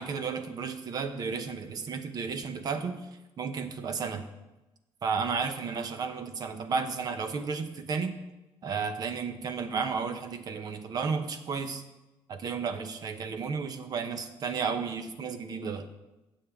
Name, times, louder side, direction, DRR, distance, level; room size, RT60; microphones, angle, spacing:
voice 1, 0.0-3.1 3.4-4.3 5.0-8.1 8.6-11.8 12.3-15.9, right 5 dB, 45° right, 8 dB, 0.9 m, -33 dB
16.0 x 7.3 x 3.6 m, 1.0 s
cardioid pair, 160°, 9 cm